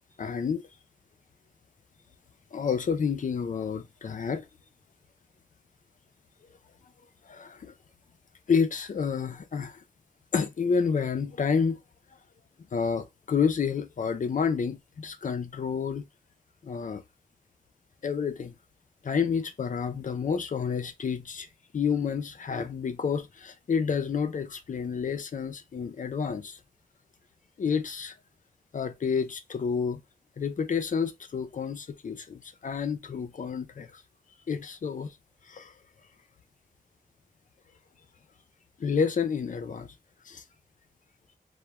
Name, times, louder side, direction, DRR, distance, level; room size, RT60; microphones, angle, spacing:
voice 1, 0.2-0.6 2.5-4.4 7.3-7.7 8.5-9.8 10.3-11.8 12.7-16.1 16.6-17.0 18.0-18.5 19.0-21.5 21.7-26.6 27.6-28.1 28.7-30.0 30.4-34.0 34.5-35.2 35.5-35.7 38.8-39.9 40.2-40.4, left 6 dB, 55° left, 0.4 m, -29 dB
2.3 x 2.1 x 2.9 m
wide cardioid pair, 90°, 16 cm